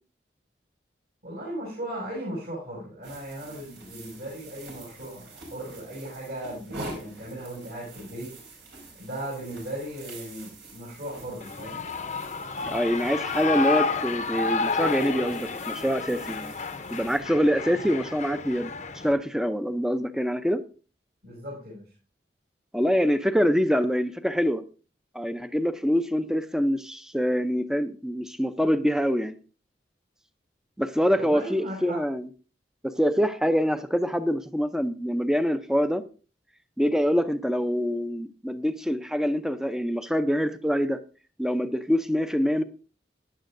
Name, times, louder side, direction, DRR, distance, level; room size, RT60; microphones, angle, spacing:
voice 1, 1.2-8.3 9.0-11.8 21.2-21.9 31.2-32.0, right 1 dB, 60° right, -6 dB, 6.5 m, -37 dB
sound 1, 3.0-17.2, right 2 dB, 80° right, 5.2 m, -46 dB
Shout / Cheering, 11.4-19.1, left 4 dB, 40° left, 0.7 m, -30 dB
voice 2, 12.7-16.5 16.9-18.7 19.0-20.6 22.7-24.6 25.1-29.4 30.8-32.3 32.8-36.0 36.8-41.0 41.4-42.6, equal, 5° right, 11 dB, 0.5 m, -25 dB
15.5 x 10.5 x 2.6 m, 0.35 s
head